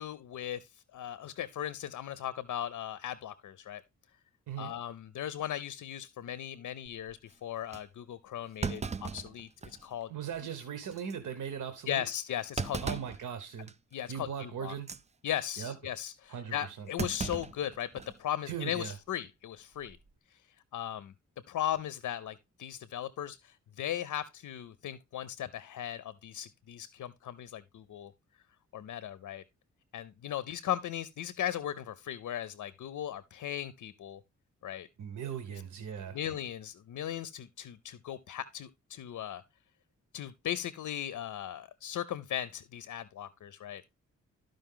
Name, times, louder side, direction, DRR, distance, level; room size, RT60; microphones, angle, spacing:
voice 1, 0.0-3.8 4.6-10.1 11.9-13.0 13.9-14.8 15.2-20.0 20.3-20.4 20.7-21.1 21.5-28.1 28.7-29.4 29.9-34.2 34.6-34.9 35.5-35.6 36.1-39.4 40.1-44.0, left 11 dB, 85° left, 0.6 m, -37 dB
Thump thud, 6.9-7.1 7.7-7.8 8.6-9.9 10.3-10.4 10.9-11.1 12.6-13.2 13.7-13.9 14.7-15.0 17.0-18.2 18.5-18.6 19.7-20.1, right 5 dB, 25° right, 0.4 m, -37 dB
voice 2, 10.1-12.0 12.8-13.7 14.1-14.9 15.6-15.7 16.3-16.9 18.5-18.9 35.0-36.2, right 8 dB, 90° right, 1.0 m, -39 dB
12.5 x 5.2 x 3.7 m
wide cardioid pair, 125°, 30 cm